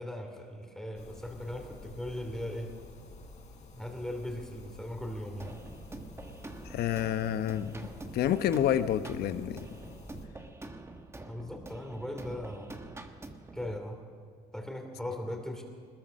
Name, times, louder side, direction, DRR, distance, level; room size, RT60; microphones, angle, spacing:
voice 1, 0.0-2.7 3.7-5.6 11.3-12.7 13.5-14.0 14.5-15.6, left 1 dB, 5° left, 2 dB, 2.9 m, -38 dB
sound 1, 0.9-10.3, left 2 dB, 45° left, 3.6 m, -50 dB
sound 2, 5.4-13.8, right 2 dB, 15° right, 1.5 m, -46 dB
voice 2, 6.6-7.7 8.1-9.7, left 11 dB, 70° left, 11 dB, 1.0 m, -28 dB
21.0 x 20.5 x 6.5 m, 2.1 s
cardioid pair, 110°, 17 cm